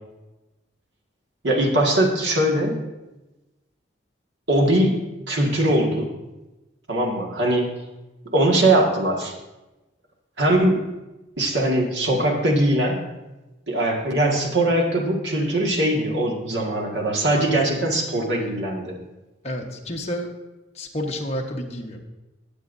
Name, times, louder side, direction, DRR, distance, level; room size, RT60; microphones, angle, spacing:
voice 1, 1.4-2.8 4.5-5.0 5.3-6.1 6.9-7.7 8.3-9.3 10.4-10.8 11.4-13.0 13.7-19.0, right 1 dB, 65° right, 0 dB, 1.9 m, -21 dB
voice 2, 19.4-20.3 20.7-22.0, equal, 35° left, 0 dB, 1.2 m, -30 dB
18.5 x 7.3 x 2.7 m, 1.0 s
head